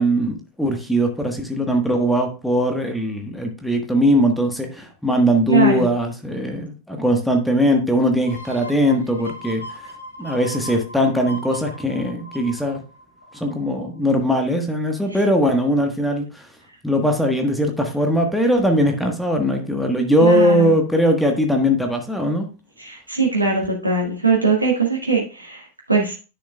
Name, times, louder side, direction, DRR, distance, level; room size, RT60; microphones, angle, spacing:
voice 1, 0.0-9.6 10.2-12.8 13.3-16.5 16.8-22.5, equal, ahead, 3 dB, 1.4 m, -20 dB
voice 2, 5.5-5.9 15.1-15.2 20.2-20.8 22.8-26.1, right 4 dB, 80° right, -1 dB, 1.8 m, -21 dB
sound 1, 8.3-13.8 14.2-14.3, equal, 80° left, 1.4 m, -38 dB
10.0 x 6.6 x 2.3 m, 0.33 s
figure-of-eight pair, 90°, 0 cm